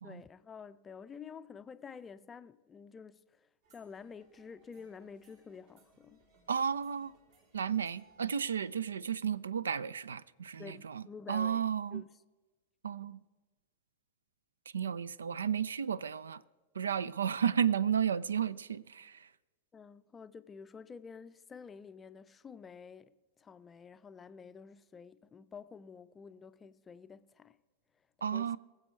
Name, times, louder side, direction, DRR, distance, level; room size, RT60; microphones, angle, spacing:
voice 1, 0.0-6.2 10.6-12.1 19.7-23.1 23.4-27.6 28.2-28.5, left 6 dB, 20° left, 0.5 m, -50 dB
sound 1, 3.6-8.8, right 4 dB, 50° right, 2.3 m, -67 dB
voice 2, 6.5-7.1 7.5-12.0 12.8-13.2 14.7-16.4 16.7-19.3 28.2-28.6, right 8 dB, 70° right, 0.3 m, -33 dB
21.5 x 7.6 x 4.4 m
figure-of-eight pair, 90°, 0 cm